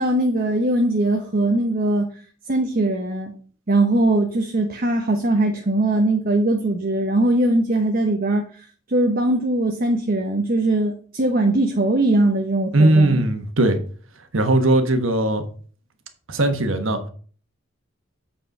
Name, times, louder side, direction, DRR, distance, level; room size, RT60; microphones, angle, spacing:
voice 1, 0.0-2.1 2.5-3.3 3.7-13.2, right 1 dB, 45° right, 0.9 m, -20 dB
voice 2, 12.7-13.8 14.3-15.4 16.3-17.0, right 2 dB, 75° right, 1.3 m, -18 dB
8.1 x 4.4 x 5.3 m
head